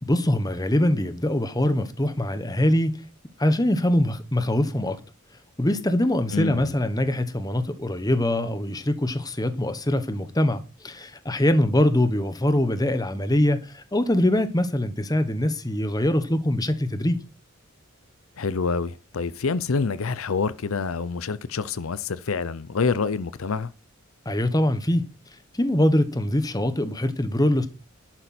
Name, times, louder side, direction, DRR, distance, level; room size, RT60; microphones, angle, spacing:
voice 1, 0.0-3.0 3.4-5.0 5.6-17.2 24.2-25.0 25.5-27.7, left 1 dB, 20° left, 1.1 m, -23 dB
voice 2, 6.3-6.7 18.4-23.7, left 4 dB, 75° left, 0.6 m, -27 dB
11.0 x 9.0 x 4.4 m
head